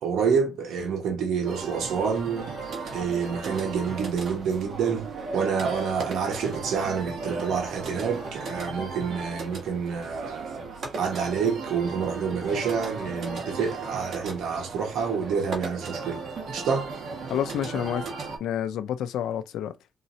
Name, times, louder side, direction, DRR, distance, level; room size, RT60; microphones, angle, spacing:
voice 1, 0.0-2.5 2.9-10.7 11.0-16.2 16.5-16.9, right 6 dB, 75° right, 1.5 m, -28 dB
sound 1, 1.4-18.4, right 4 dB, 55° right, 1.8 m, -36 dB
voice 2, 17.3-18.1 18.4-19.8, left 10 dB, 80° left, 0.5 m, -29 dB
4.1 x 3.7 x 2.8 m
cardioid pair, 90°, 0 cm